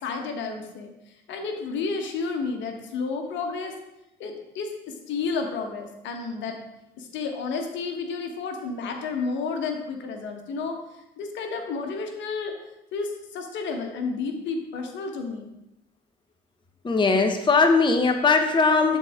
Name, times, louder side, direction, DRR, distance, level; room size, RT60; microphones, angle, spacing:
voice 1, 0.0-0.9 1.3-3.7 4.2-6.6 7.0-10.8 11.2-12.5 12.9-15.5, left 4 dB, 70° left, 4 dB, 1.3 m, -31 dB
voice 2, 16.8-19.0, left 4 dB, 25° left, 5 dB, 0.8 m, -20 dB
12.0 x 4.2 x 3.6 m, 0.91 s
supercardioid pair, 70°, 20 cm